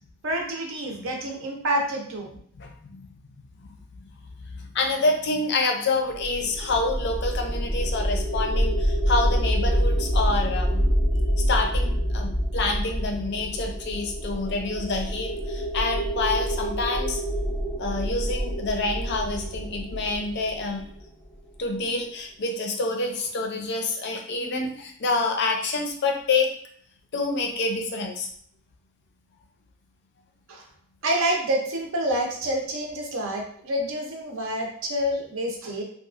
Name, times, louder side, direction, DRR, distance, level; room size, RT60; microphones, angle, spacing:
voice 1, 0.2-2.3 30.5-30.7 31.0-35.8, right 1 dB, 65° right, 1 dB, 0.6 m, -27 dB
voice 2, 2.6-3.1 3.6-3.8 4.5-10.8 11.5-17.2 17.8-20.8 21.6-26.5 27.1-28.3, left 3 dB, 50° left, 3 dB, 0.4 m, -27 dB
sound 1, 6.1-21.2, equal, 15° right, 0.4 m, -26 dB
2.8 x 2.3 x 2.4 m, 0.62 s
head